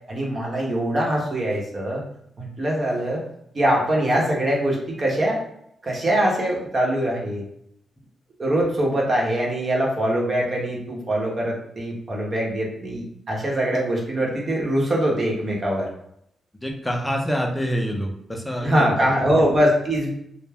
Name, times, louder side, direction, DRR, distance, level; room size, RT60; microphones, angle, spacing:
voice 1, 0.1-2.0 2.4-3.2 3.5-5.4 5.8-7.4 8.4-15.9 18.6-20.1, right 1 dB, 45° right, -2 dB, 0.9 m, -23 dB
voice 2, 16.6-19.1, equal, 10° left, 2 dB, 0.6 m, -26 dB
2.2 x 2.1 x 3.4 m, 0.73 s
cardioid pair, 60°, 0 cm